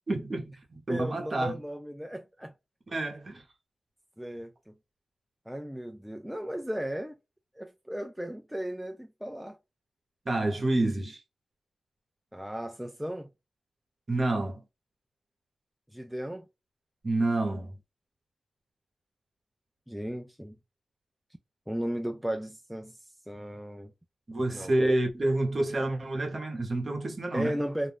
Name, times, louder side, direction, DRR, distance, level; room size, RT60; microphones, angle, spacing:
voice 1, 0.1-1.6 2.9-3.4 10.3-11.2 14.1-14.6 17.0-17.7 24.3-27.6, right 2 dB, 35° right, 0.9 m, -28 dB
voice 2, 0.9-2.5 4.2-4.7 5.5-7.2 7.6-9.6 12.3-13.3 15.9-16.5 19.9-20.6 21.7-23.0 23.3-23.9 24.5-24.8 27.3-27.9, equal, 5° right, 0.3 m, -35 dB
2.5 x 2.2 x 3.3 m
wide cardioid pair, 135°, 0 cm